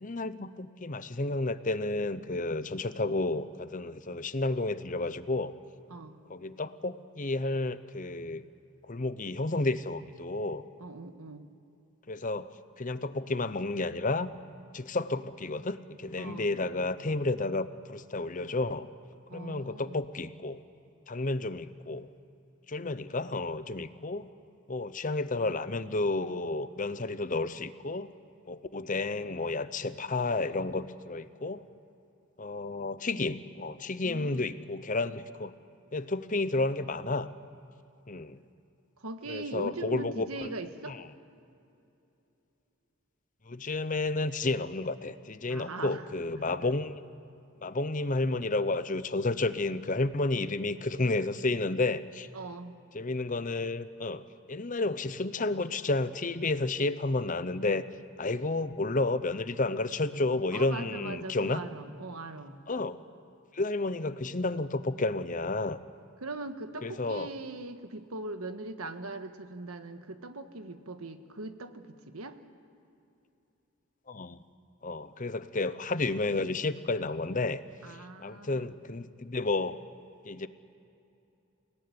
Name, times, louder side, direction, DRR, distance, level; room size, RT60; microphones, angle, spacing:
voice 1, 0.0-5.5 6.3-8.4 8.8-10.6 12.1-12.5 12.8-14.3 14.7-18.9 19.3-20.6 21.1-22.1 22.7-24.3 24.7-28.1 28.5-31.6 32.4-35.5 35.9-37.3 38.1-38.4 39.3-40.5 40.9-41.0 43.5-47.0 47.6-52.3 52.9-54.2 54.5-57.8 58.2-61.6 62.7-63.0 63.5-65.8 66.8-67.3 74.1-74.4 74.8-77.6 77.9-79.8 80.2-80.5, left 2 dB, 35° left, 13 dB, 0.8 m, -31 dB
voice 2, 5.9-6.2 10.8-11.4 16.2-16.5 19.3-20.0 34.0-34.5 39.0-41.0 45.5-46.0 46.4-46.5 52.3-52.8 60.5-62.6 66.2-72.4 77.8-78.7, right 2 dB, 90° right, 8 dB, 1.6 m, -40 dB
29.5 x 18.0 x 9.8 m, 2.8 s
head